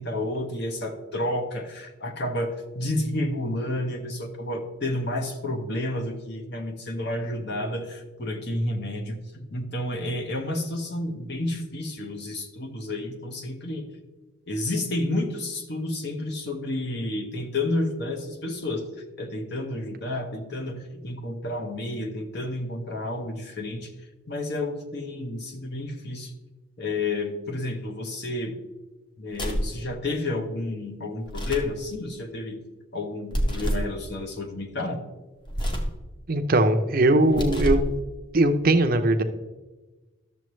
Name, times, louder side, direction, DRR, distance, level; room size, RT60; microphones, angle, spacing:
voice 1, 0.0-13.9 14.5-18.8 19.2-23.9 24.3-26.3 26.8-28.6 29.2-32.6 32.9-35.0, left 1 dB, 50° left, 5 dB, 1.0 m, -30 dB
sound 1, 29.3-29.8 31.2-31.8 33.3-33.9 35.5-36.0 37.2-38.0, equal, 20° left, 0.9 m, -27 dB
voice 2, 36.3-37.8 38.3-39.2, right 2 dB, 45° right, 7 dB, 0.6 m, -20 dB
12.0 x 6.8 x 3.1 m, 1.2 s
head